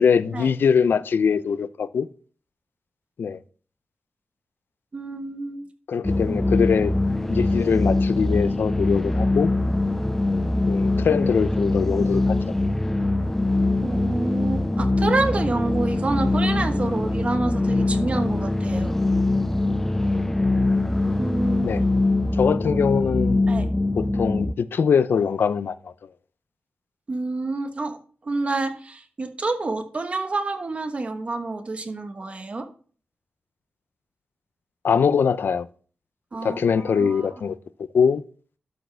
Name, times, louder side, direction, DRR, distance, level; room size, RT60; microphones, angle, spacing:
voice 1, 0.0-2.1 3.2-3.4 5.9-6.9 7.3-9.5 10.7-12.4 21.6-21.8 22.3-23.4 24.0-25.9 34.8-35.7 36.4-37.6 37.9-38.2, left 6 dB, 75° left, 0.5 m, -22 dB
voice 2, 4.9-5.6 13.8-19.0 21.2-21.8 23.5-23.7 27.1-28.0 28.2-32.7 36.3-37.4, right 3 dB, 35° right, 1.2 m, -28 dB
sound 1, 6.0-24.5, left 2 dB, 10° left, 0.3 m, -23 dB
12.0 x 6.8 x 3.4 m
wide cardioid pair, 165°, 4 cm